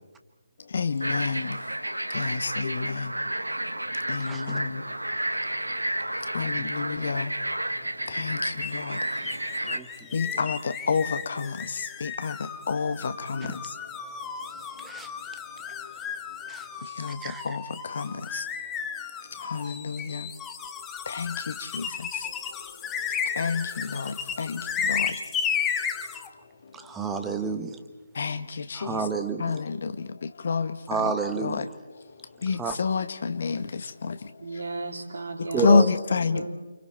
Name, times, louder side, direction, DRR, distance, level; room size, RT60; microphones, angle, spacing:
voice 1, 0.7-1.6 2.1-3.1 4.1-4.8 6.3-7.4 8.1-9.0 10.1-13.7 15.8-15.9 16.8-18.5 19.4-20.3 21.1-22.3 23.3-25.2 28.1-29.1 29.4-31.1 31.4-31.7 32.4-34.3 35.6-36.5, left 4 dB, 50° left, 11 dB, 1.5 m, -29 dB
sound 1, 1.0-9.8, right 1 dB, 85° right, 1.4 m, -31 dB
voice 2, 4.3-4.6 6.5-6.7 9.7-9.9 14.8-15.1 16.5-16.6 17.2-17.6 26.8-27.8 28.7-29.6 30.9-31.6 32.6-32.8 35.5-35.9, right 5 dB, 10° right, 7 dB, 1.4 m, -30 dB
sound 2, 8.6-26.3, left 7 dB, 10° left, 1.1 m, -34 dB
voice 3, 34.4-35.9 36.2-36.6, right 3 dB, 60° right, 1 dB, 4.1 m, -34 dB
29.5 x 27.5 x 4.5 m, 1.3 s
figure-of-eight pair, 145°, 0 cm